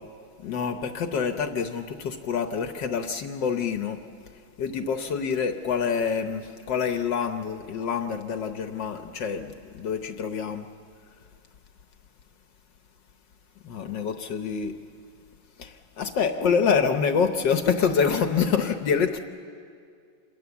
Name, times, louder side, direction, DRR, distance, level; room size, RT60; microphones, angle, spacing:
voice 1, 0.4-4.0 4.6-10.7 13.6-14.7 15.6-19.2, left 6 dB, 65° left, 6 dB, 1.5 m, -26 dB
27.0 x 22.0 x 7.1 m, 2.2 s
omnidirectional pair, 2.2 m